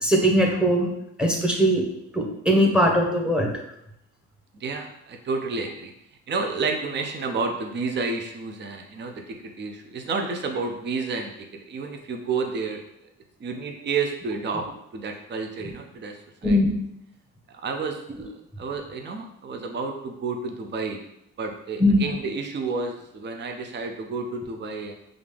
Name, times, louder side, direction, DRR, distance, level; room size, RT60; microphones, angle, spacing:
voice 1, 0.0-0.9 1.2-1.8 2.1-3.5 16.4-16.8 21.8-22.0, equal, 5° right, 0 dB, 1.0 m, -20 dB
voice 2, 4.5-5.9 6.3-12.8 13.4-14.6 14.9-16.2 16.4-16.6 17.6-18.3 18.6-21.0 21.4-25.0, right 4 dB, 35° right, 3 dB, 0.6 m, -30 dB
5.2 x 2.5 x 3.4 m, 0.80 s
cardioid pair, 90°, 30 cm